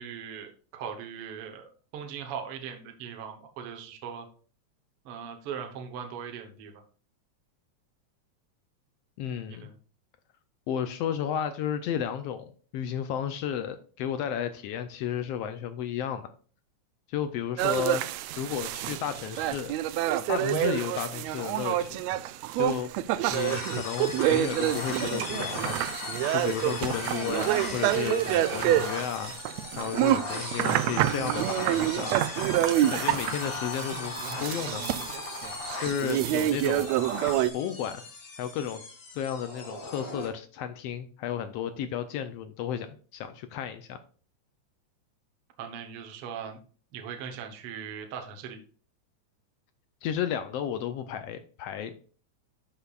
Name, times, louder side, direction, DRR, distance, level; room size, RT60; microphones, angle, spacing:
voice 1, 0.0-1.6 1.9-4.3 5.0-6.8 9.5-9.8 45.6-46.6 46.9-48.6, right 7 dB, 60° right, 4 dB, 1.7 m, -39 dB
voice 2, 9.2-9.7 10.7-16.3 17.1-18.1 18.4-19.7 20.3-22.0 22.6-22.9 23.3-25.8 26.3-29.3 29.7-32.2 32.8-34.9 35.8-36.9 37.5-38.1 38.4-38.8 39.1-44.0 50.0-51.9, left 9 dB, 85° left, 9 dB, 1.4 m, -33 dB
sound 1, 17.6-37.5, right 13 dB, 80° right, 1.6 m, -27 dB
sound 2, 23.3-40.3, left 3 dB, 40° left, 1.9 m, -38 dB
11.5 x 5.8 x 2.4 m, 0.40 s
omnidirectional pair, 3.5 m